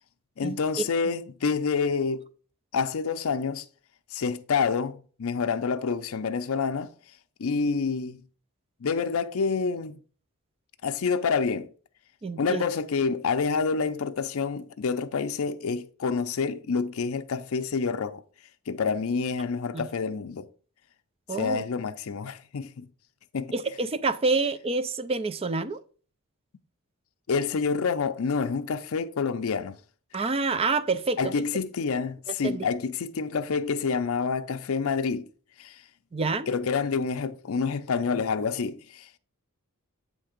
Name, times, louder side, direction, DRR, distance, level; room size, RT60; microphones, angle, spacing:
voice 1, 0.4-2.2 2.7-3.7 4.1-6.9 7.4-8.2 8.8-10.0 10.8-11.7 12.4-18.2 18.7-20.5 21.4-22.9 23.3-23.5 27.3-29.8 31.2-35.3 35.6-35.8 36.5-39.1, left 5 dB, 70° left, 0.5 m, -28 dB
voice 2, 12.2-12.6 19.7-19.9 21.3-21.6 23.5-25.8 30.1-31.3 32.3-32.7 36.1-36.5, right 3 dB, 25° right, 0.4 m, -27 dB
8.7 x 3.3 x 5.0 m
head